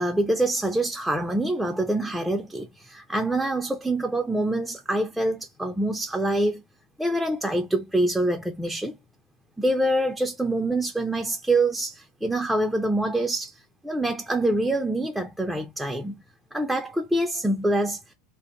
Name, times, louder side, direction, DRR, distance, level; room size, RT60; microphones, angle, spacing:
voice 1, 0.0-6.6 7.0-9.0 9.6-13.5 13.8-16.2 16.5-18.0, right 1 dB, 5° right, 0.5 m, -25 dB
2.2 x 2.1 x 2.8 m
figure-of-eight pair, 80°, 0 cm